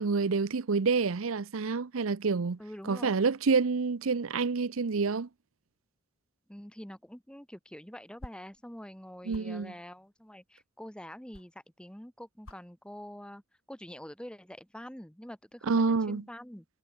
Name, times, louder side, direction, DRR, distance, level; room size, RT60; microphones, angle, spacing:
voice 1, 0.0-2.6 2.9-5.3 9.3-9.7 15.7-16.2, right 4 dB, 80° right, 0.7 m, -28 dB
voice 2, 2.6-3.3 6.5-13.4 13.7-16.6, equal, 5° left, 1.2 m, -46 dB
sound 1, 7.2-12.0 12.3-12.7 13.0-13.6 13.9-14.3, left 1 dB, 80° left, 3.5 m, -51 dB
head